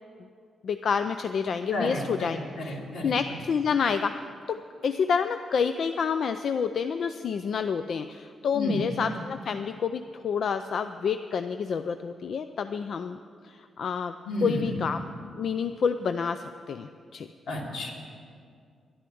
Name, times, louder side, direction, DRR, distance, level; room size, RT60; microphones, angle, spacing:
voice 1, 0.6-2.8 3.0-4.2 4.5-13.2 13.4-14.1 14.4-15.0 15.4-17.3, left 6 dB, 55° left, 9 dB, 0.4 m, -28 dB
voice 2, 1.7-3.1 8.5-8.9 14.2-15.0 17.5-17.9, left 1 dB, 80° left, -1 dB, 2.9 m, -31 dB
12.0 x 11.5 x 8.5 m, 2.3 s
wide cardioid pair, 160°, 0 cm